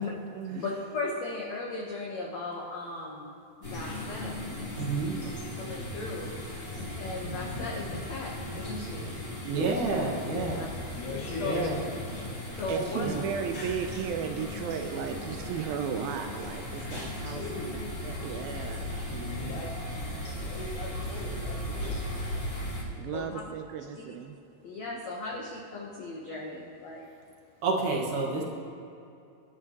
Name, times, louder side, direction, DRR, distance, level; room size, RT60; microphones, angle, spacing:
voice 1, 0.0-0.6 9.4-9.8 12.7-17.4 18.0-18.9 23.0-24.4, right 7 dB, 80° right, 5 dB, 2.2 m, -35 dB
voice 2, 0.5-3.3 3.7-4.3 5.6-6.3 7.0-9.2 10.5-10.7 11.4-11.6 12.6-13.2 23.1-23.3 24.1-24.2 24.6-27.1, left 3 dB, 70° left, -3 dB, 1.6 m, -36 dB
sound 1, 3.6-22.8, left 1 dB, 20° left, 3.4 m, -37 dB
voice 3, 4.8-5.2 7.3-7.4 9.5-10.7 11.4-11.8 12.9-13.2 19.1-19.5 27.6-28.4, right 3 dB, 60° right, -1 dB, 2.7 m, -30 dB
sound 2, 6.7-9.1 10.2-12.6 13.5-15.9 16.4-18.8, left 1 dB, 50° left, 3.3 m, -44 dB
voice 4, 11.0-11.8 17.3-17.7 19.5-22.5, left 3 dB, 90° left, -3 dB, 4.3 m, -40 dB
25.0 x 12.0 x 3.0 m, 2.6 s
omnidirectional pair, 4.8 m